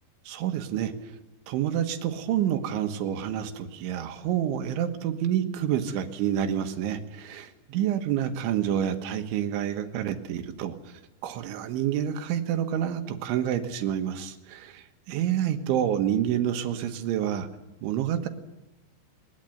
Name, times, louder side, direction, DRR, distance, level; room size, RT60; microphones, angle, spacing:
voice 1, 0.3-0.9 1.5-10.8 11.2-17.5 17.8-18.3, right 10 dB, 85° right, 7 dB, 3.9 m, -28 dB
21.0 x 21.0 x 7.9 m, 0.95 s
omnidirectional pair, 5.3 m